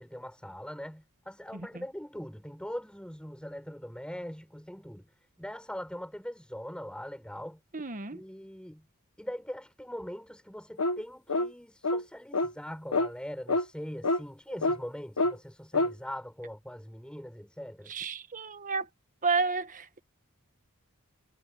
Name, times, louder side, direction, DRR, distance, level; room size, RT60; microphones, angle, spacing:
voice 1, 0.0-5.1 5.4-7.6 8.1-8.9 9.2-17.9, equal, 5° left, 5.6 m, -41 dB
voice 2, 1.5-1.8 7.7-8.2 17.9-18.9 19.2-20.0, right 4 dB, 35° right, 1.4 m, -31 dB
sound 1, 10.8-11.0 11.3-11.5 11.8-12.0 12.3-12.5 12.9-13.1 13.5-13.6 14.0-14.2 14.6-14.8 15.2-15.3 15.7-15.9, left 2 dB, 85° left, 1.5 m, -26 dB
head